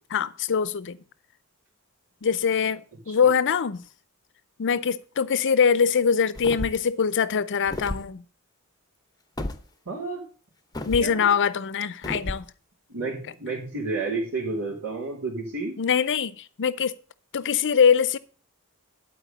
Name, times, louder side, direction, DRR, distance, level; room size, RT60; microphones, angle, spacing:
voice 1, 0.1-1.0 2.2-3.8 4.6-8.2 10.9-12.5 15.8-16.9 17.3-18.2, left 6 dB, 55° left, 0.6 m, -23 dB
sound 1, 6.3-6.9 7.6-8.1 9.4-9.6 10.7-11.1 12.0-12.4, left 1 dB, 15° left, 0.8 m, -32 dB
voice 2, 9.8-10.2 11.0-11.3 12.9-15.7, right 3 dB, 75° right, 3.3 m, -31 dB
11.0 x 4.7 x 6.7 m
head